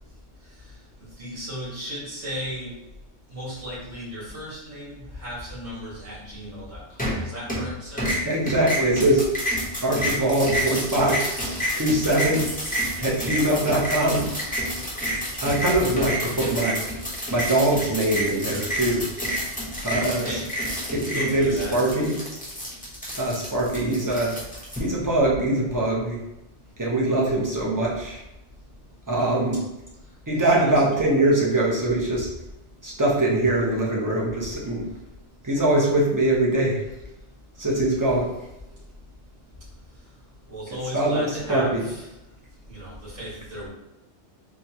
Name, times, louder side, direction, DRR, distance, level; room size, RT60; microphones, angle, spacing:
voice 1, 1.2-2.7 3.3-8.1 15.7-15.8 20.0-20.5 20.9-21.8 30.4-31.2 40.5-42.1 42.7-43.7, equal, 85° right, -7 dB, 2.0 m, -36 dB
sound 1, 7.0-7.7 8.0-24.8, equal, 10° left, 0.8 m, -29 dB
voice 2, 8.3-9.3 9.8-11.2 11.8-12.5 13.0-14.3 15.4-16.8 17.3-19.1 19.8-20.2 20.9-22.2 23.2-24.3 24.8-26.2 26.8-28.2 29.1-29.6 30.3-32.3 32.8-34.8 35.4-36.8 37.6-38.3 40.9-41.8, right 1 dB, 20° right, -4 dB, 0.6 m, -22 dB
4.5 x 2.3 x 2.8 m, 0.91 s
omnidirectional pair, 1.2 m